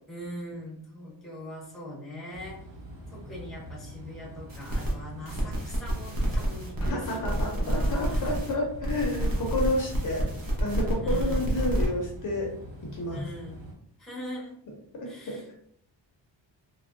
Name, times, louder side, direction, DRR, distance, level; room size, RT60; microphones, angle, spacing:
voice 1, 0.1-2.6 3.1-8.4 11.0-11.5 13.1-13.6 14.0-14.5 15.1-15.4, equal, ahead, -4 dB, 0.7 m, -41 dB
sound 1, 2.3-13.7, equal, 85° right, 1.0 m, -44 dB
sound 2, 4.5-4.9 5.3-8.5 8.8-11.9, right 1 dB, 50° right, 0.8 m, -29 dB
voice 2, 6.9-10.3 10.6-12.5 12.8-13.3 14.9-15.5, left 1 dB, 45° left, -1 dB, 0.5 m, -30 dB
3.3 x 2.1 x 2.5 m, 0.69 s
wide cardioid pair, 180°, 44 cm